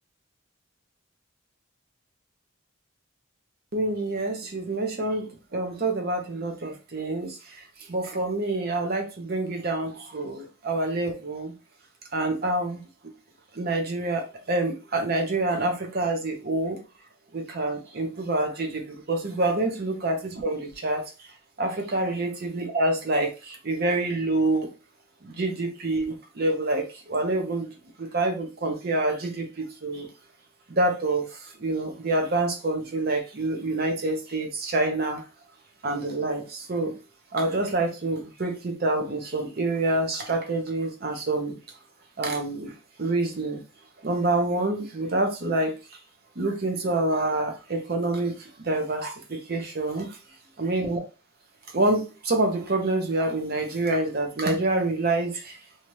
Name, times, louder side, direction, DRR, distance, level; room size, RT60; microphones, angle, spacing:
voice 1, 3.7-7.4 7.9-11.5 12.1-12.8 13.5-16.8 17.3-21.0 21.6-24.7 25.2-27.7 28.0-30.1 30.7-35.2 35.8-36.9 37.3-41.6 42.2-42.7 43.0-43.6 44.0-45.7 46.4-48.4 48.6-50.1 50.6-51.0 51.7-55.6, right 2 dB, 50° right, 3 dB, 0.6 m, -27 dB
2.7 x 2.4 x 3.1 m, 0.31 s
head